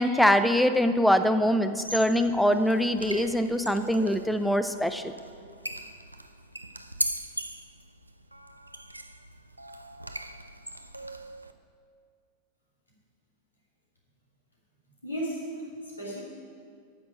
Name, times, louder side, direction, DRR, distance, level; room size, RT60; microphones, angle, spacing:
voice 1, 0.0-5.0, equal, ahead, 9 dB, 0.5 m, -23 dB
sound 1, 1.7-11.5, right 1 dB, 85° right, 0.5 m, -39 dB
voice 2, 15.0-16.2, right 1 dB, 80° left, -4 dB, 2.8 m, -35 dB
9.3 x 6.1 x 8.2 m, 2.2 s
figure-of-eight pair, 90°, 0 cm